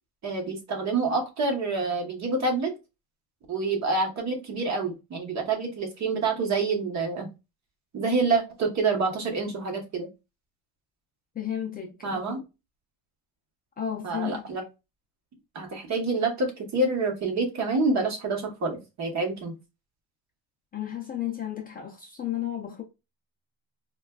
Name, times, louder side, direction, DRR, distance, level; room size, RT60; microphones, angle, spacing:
voice 1, 0.2-2.7 3.5-7.3 7.9-10.1 12.0-12.4 14.0-14.6 15.5-19.5, right 3 dB, 40° right, 1.1 m, -27 dB
voice 2, 11.3-12.4 13.8-14.4 20.7-22.8, left 10 dB, 20° left, 0.5 m, -33 dB
4.2 x 2.3 x 2.3 m
cardioid pair, 160°, 40 cm